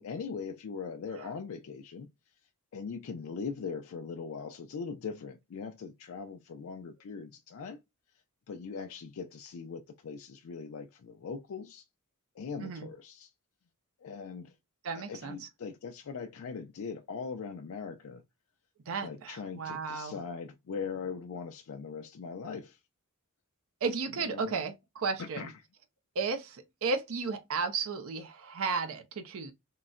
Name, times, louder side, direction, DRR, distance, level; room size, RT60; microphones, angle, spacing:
voice 1, 0.0-2.1 2.7-7.8 8.5-11.8 12.4-13.3 14.0-14.5 14.9-18.2 19.0-22.8 24.2-24.7 25.2-25.5, left 5 dB, 65° left, 0.4 m, -40 dB
voice 2, 14.8-15.4 18.9-20.2 23.8-25.5 26.2-29.5, right 4 dB, 65° right, 0.5 m, -34 dB
3.8 x 2.1 x 2.3 m
head